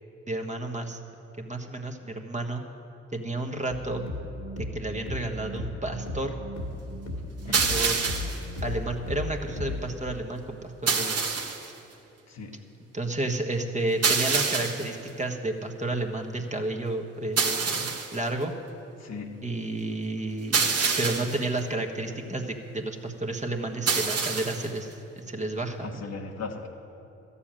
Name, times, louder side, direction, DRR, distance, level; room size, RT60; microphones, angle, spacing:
voice 1, 0.3-1.0 1.4-2.6 3.1-4.0 4.7-6.3 7.4-8.0 8.6-10.6 10.8-11.2 12.9-18.5 19.4-20.7 21.0-24.9 25.2-25.9, right 2 dB, 25° right, 3 dB, 1.4 m, -31 dB
sound 1, 3.7-9.8, left 2 dB, 80° left, 2.4 m, -36 dB
sound 2, 7.5-8.5 10.9-11.7 14.0-15.0 17.4-18.2 20.5-21.5 23.9-24.7, right 5 dB, 55° right, 1.4 m, -26 dB
voice 2, 12.3-12.6 19.0-19.4 25.8-26.7, left 4 dB, 60° left, 3 dB, 1.5 m, -38 dB
13.0 x 7.1 x 9.0 m, 2.9 s
supercardioid pair, 50°, 30 cm